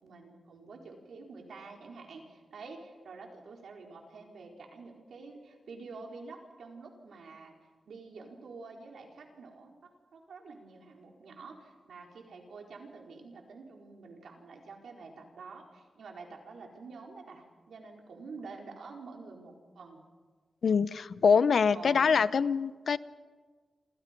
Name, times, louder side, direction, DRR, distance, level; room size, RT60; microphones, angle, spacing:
voice 1, 0.0-7.5 7.9-9.7 10.1-20.0 21.7-22.1, right 4 dB, 90° right, 1 dB, 4.4 m, -48 dB
voice 2, 20.6-23.0, left 6 dB, 65° left, 16 dB, 0.7 m, -24 dB
28.0 x 28.0 x 5.3 m, 1.4 s
wide cardioid pair, 140°, 0 cm